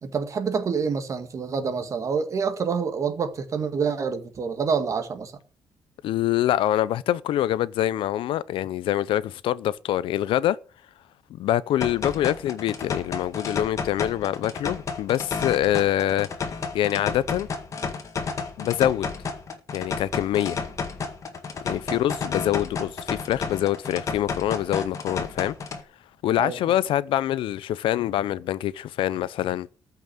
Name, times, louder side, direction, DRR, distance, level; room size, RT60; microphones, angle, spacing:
voice 1, 0.0-5.3 21.9-22.0 26.4-26.6, right 5 dB, 35° right, 1.9 m, -27 dB
voice 2, 6.0-10.6 11.3-16.3 16.7-17.5 18.6-19.1 19.7-20.6 21.6-25.5 26.2-29.7, left 12 dB, 80° left, 0.6 m, -25 dB
sound 1, 11.8-25.8, left 5 dB, 35° left, 1.8 m, -32 dB
14.0 x 5.9 x 8.9 m
cardioid pair, 160°, 9 cm